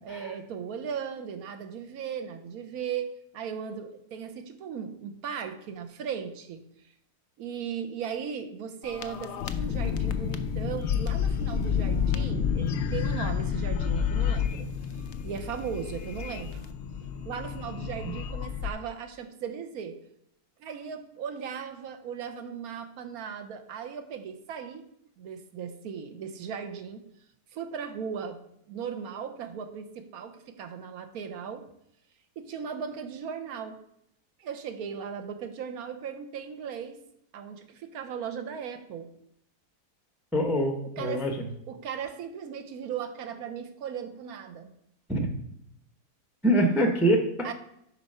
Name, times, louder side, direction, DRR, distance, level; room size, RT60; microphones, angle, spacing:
voice 1, 0.0-6.6 7.4-16.7 17.3-20.0 20.6-24.8 25.2-27.1 27.5-28.4 28.7-31.7 32.4-33.8 34.4-37.0 37.3-39.1 40.8-41.3 41.7-44.7 47.4-47.5, right 7 dB, 70° right, 7 dB, 1.2 m, -37 dB
sound 1, 8.8-18.7, left 7 dB, 80° left, 0.6 m, -30 dB
voice 2, 40.3-41.3 45.1-45.3 46.4-47.5, right 1 dB, ahead, 3 dB, 0.5 m, -24 dB
6.8 x 4.6 x 5.5 m, 0.76 s
omnidirectional pair, 1.7 m